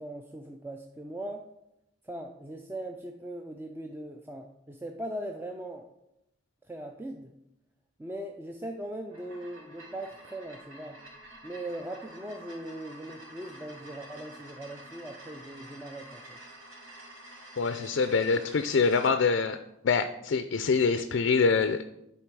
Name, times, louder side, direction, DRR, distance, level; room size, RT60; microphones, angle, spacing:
voice 1, 0.0-1.5 2.0-5.9 6.7-7.3 8.0-11.0 11.4-16.4, right 1 dB, 10° right, 4 dB, 0.3 m, -40 dB
sound 1, 9.0-19.1, right 1 dB, 80° right, 2.8 m, -49 dB
voice 2, 17.6-19.6 19.8-21.8, left 5 dB, 60° left, 10 dB, 0.4 m, -25 dB
11.0 x 4.2 x 4.7 m, 0.86 s
head